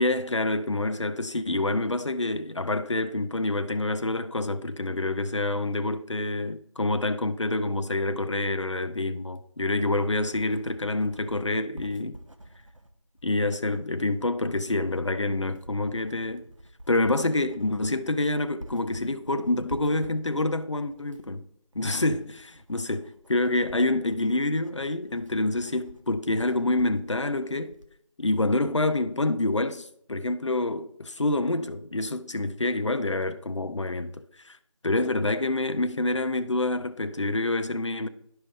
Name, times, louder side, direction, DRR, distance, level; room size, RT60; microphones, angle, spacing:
voice 1, 0.0-12.2 13.2-16.4 16.9-21.4 21.7-27.8 28.2-34.6 34.8-38.1, left 2 dB, 60° left, 0.6 m, -27 dB
Writing, 9.4-28.0, right 1 dB, 65° right, 1.1 m, -49 dB
11.5 x 5.6 x 3.2 m
figure-of-eight pair, 175°, 18 cm